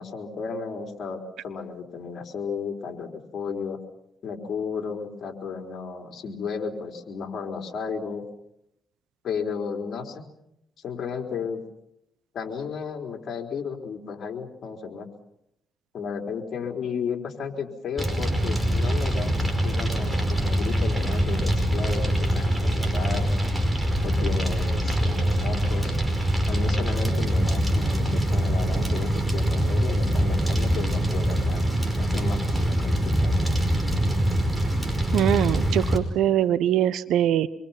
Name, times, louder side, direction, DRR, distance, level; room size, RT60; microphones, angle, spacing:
voice 1, 0.0-3.8 4.2-8.2 9.2-10.3 10.8-11.6 12.3-15.1 15.9-23.3 24.0-26.0 26.5-31.7 32.0-33.5, left 5 dB, 60° left, 2 dB, 4.1 m, -33 dB
Fire, 18.0-36.0, equal, 10° right, 5.2 m, -24 dB
voice 2, 35.1-37.5, right 11 dB, 80° right, 15 dB, 1.1 m, -22 dB
27.0 x 23.0 x 5.9 m, 0.82 s
cardioid pair, 90°, 0 cm